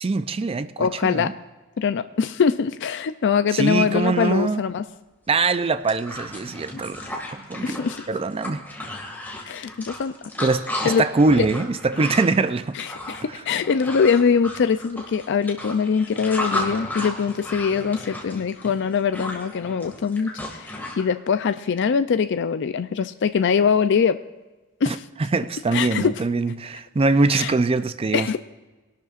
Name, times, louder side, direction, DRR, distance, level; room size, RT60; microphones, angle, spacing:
voice 1, 0.0-1.3 3.5-4.6 5.3-7.0 7.3-7.8 8.1-8.6 10.4-12.8 13.3-13.4 24.9-25.0 25.3-28.3, right 3 dB, 25° right, 0.4 m, -23 dB
voice 2, 0.8-1.3 1.8-4.8 7.6-8.0 9.4-10.1 10.8-11.0 11.4-11.5 12.7-24.2 24.8-25.0 25.7-26.2 27.3-27.5 28.1-28.4, left 6 dB, 55° left, 0.4 m, -22 dB
sound 1, 5.3-5.4 5.7-21.0, left 1 dB, 10° left, 2.0 m, -33 dB
21.5 x 12.0 x 2.5 m
head